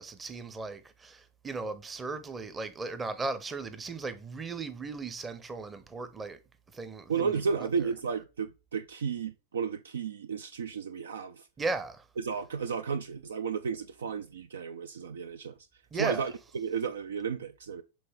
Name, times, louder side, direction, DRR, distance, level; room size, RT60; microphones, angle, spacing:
voice 1, 0.0-6.4 6.7-7.7 11.6-12.1 15.9-16.3, right 3 dB, 15° right, 0.8 m, -36 dB
voice 2, 7.1-11.5 12.2-15.5 16.0-17.8, right 6 dB, 65° right, 0.4 m, -33 dB
7.8 x 3.9 x 3.4 m
figure-of-eight pair, 90°, 0 cm